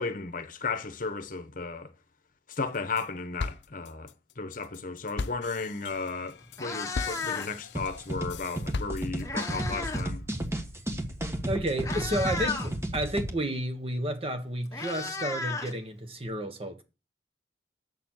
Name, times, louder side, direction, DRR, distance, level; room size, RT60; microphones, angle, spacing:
voice 1, 0.0-1.9 2.5-4.1 4.4-10.2, left 4 dB, 50° left, 1.0 m, -34 dB
sound 1, 2.5-3.1 3.4-9.4, left 4 dB, 80° left, 0.6 m, -38 dB
Meow, 5.9-6.1 6.4-7.7 8.8-10.1 10.4-10.7 11.4-11.5 11.8-12.7 14.0-14.1 14.4-16.3, left 4 dB, 20° left, 1.2 m, -35 dB
sound 2, 7.8-13.3, right 1 dB, 15° right, 1.3 m, -33 dB
voice 2, 11.4-16.8, right 1 dB, 30° right, 1.4 m, -31 dB
7.6 x 6.8 x 7.8 m
head